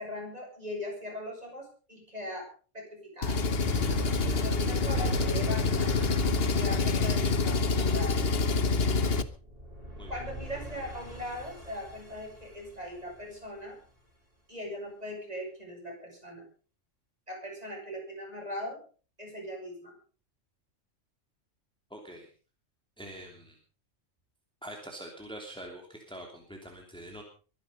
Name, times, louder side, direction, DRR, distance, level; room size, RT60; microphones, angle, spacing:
voice 1, 0.0-2.5 2.7-3.4 4.3-5.9 6.4-8.2 10.1-13.8 14.5-16.4 17.3-18.8 19.2-19.9, left 1 dB, 30° right, 0 dB, 7.7 m, -40 dB
Engine, 3.2-9.2, left 4 dB, 55° left, 1.3 m, -27 dB
sound 1, 3.4-6.8, right 2 dB, 70° right, 4.7 m, -36 dB
sound 2, 9.3-14.3, equal, 45° right, 6.7 m, -46 dB
voice 2, 21.9-22.3 23.0-23.6 24.6-27.2, right 1 dB, 5° left, 1 dB, 3.0 m, -44 dB
23.0 x 10.5 x 5.4 m, 0.40 s
omnidirectional pair, 1.3 m